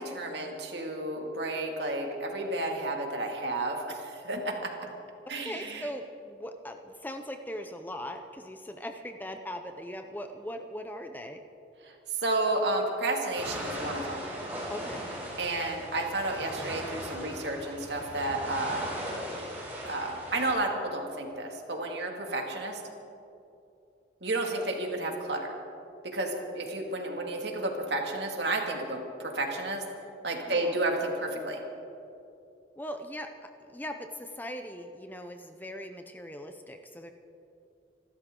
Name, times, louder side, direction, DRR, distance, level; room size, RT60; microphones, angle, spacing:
voice 1, 0.0-4.7 5.3-5.9 11.8-11.9 12.2-14.2 15.4-18.8 19.8-22.8 24.2-25.5 26.0-29.8 30.2-31.6, right 2 dB, 65° right, 2 dB, 2.3 m, -31 dB
voice 2, 5.4-11.4 14.7-15.0 30.5-30.8 32.8-37.1, equal, 10° left, 6 dB, 0.6 m, -40 dB
sound 1, 13.3-20.5, equal, 10° right, 4.7 m, -38 dB
27.0 x 13.0 x 3.8 m, 2.7 s
head